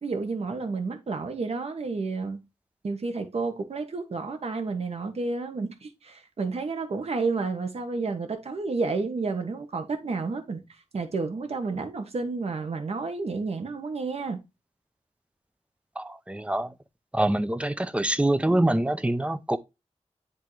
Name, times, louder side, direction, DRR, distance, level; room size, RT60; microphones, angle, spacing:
voice 1, 0.0-2.4 2.8-14.4, right 4 dB, 60° right, 1.2 m, -31 dB
voice 2, 16.0-16.7 17.1-19.6, right 1 dB, 10° right, 0.6 m, -25 dB
10.0 x 3.6 x 3.2 m
wide cardioid pair, 105°, 12 cm